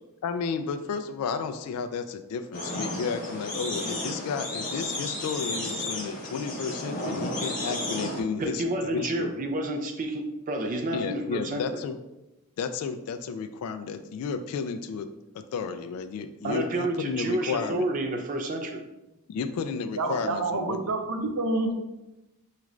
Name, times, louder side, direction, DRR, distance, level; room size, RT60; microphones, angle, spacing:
voice 1, 0.2-9.3 10.9-12.0 12.6-15.1 15.3-17.9 19.3-20.8, left 5 dB, 75° left, 0.3 m, -32 dB
sound 1, 2.5-8.2, left 1 dB, 40° left, 0.9 m, -33 dB
voice 2, 8.4-11.6 16.4-18.8, right 1 dB, 35° right, 0.3 m, -30 dB
voice 3, 20.0-21.7, right 2 dB, 80° right, 0.6 m, -28 dB
4.8 x 2.4 x 3.1 m
head